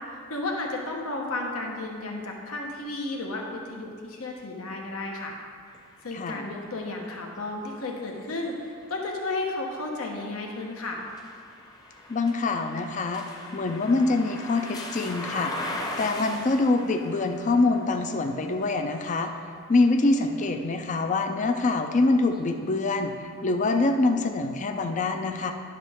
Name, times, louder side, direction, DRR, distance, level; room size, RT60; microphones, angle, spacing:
voice 1, 0.3-5.3 6.0-11.0, left 2 dB, 80° left, 0 dB, 1.2 m, -33 dB
sound 1, 5.7-21.6 22.2-23.4, left 1 dB, 15° left, 0.8 m, -41 dB
voice 2, 6.1-6.5 12.1-13.2 13.5-15.5 16.0-19.3 19.7-23.1 23.4-25.5, left 3 dB, 35° left, 5 dB, 0.4 m, -25 dB
10.5 x 6.2 x 3.6 m, 2.2 s
head